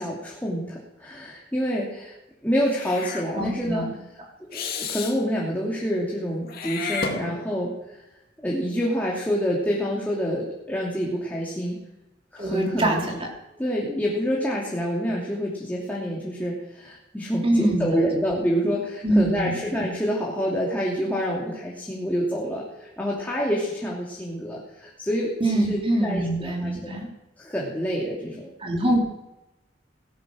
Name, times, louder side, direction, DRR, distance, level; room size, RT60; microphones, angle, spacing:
voice 1, 0.0-2.1 2.4-3.8 4.5-8.0 8.4-11.8 12.3-13.0 13.6-26.9 27.4-28.8, equal, 10° left, -4 dB, 2.8 m, -27 dB
Meow / Hiss, 2.6-3.3 4.5-5.2 6.5-7.7, left 4 dB, 55° left, 2.3 m, -31 dB
voice 2, 3.3-3.9 12.4-13.3 17.4-18.0 19.0-19.5 25.4-27.1 28.6-29.0, right 1 dB, 30° right, 0 dB, 3.4 m, -24 dB
18.0 x 12.0 x 6.4 m, 0.97 s
head